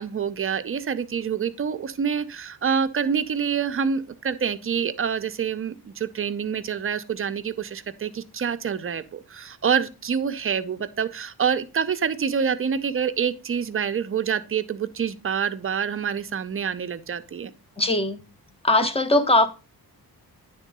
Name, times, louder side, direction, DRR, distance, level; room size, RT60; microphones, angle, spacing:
voice 1, 0.0-17.5, right 7 dB, 35° right, 0.5 m, -27 dB
voice 2, 17.8-18.2 18.6-19.5, left 2 dB, 15° left, 0.7 m, -20 dB
10.0 x 3.7 x 5.3 m
wide cardioid pair, 160°, 38 cm